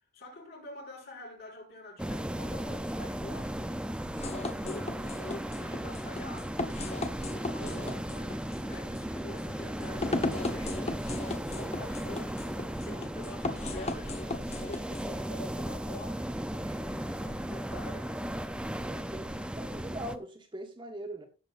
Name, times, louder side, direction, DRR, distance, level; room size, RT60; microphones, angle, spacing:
voice 1, 0.1-3.8 4.2-6.6 7.5-11.0 11.4-14.2 14.5-18.2, left 2 dB, 50° left, 6.3 m, -47 dB
sound 1, 2.0-20.2, equal, 5° right, 0.6 m, -36 dB
sound 2, 4.1-15.1, left 2 dB, 30° left, 1.2 m, -37 dB
voice 2, 7.6-8.0 18.6-21.2, right 1 dB, 20° right, 1.6 m, -42 dB
17.0 x 7.4 x 2.6 m
head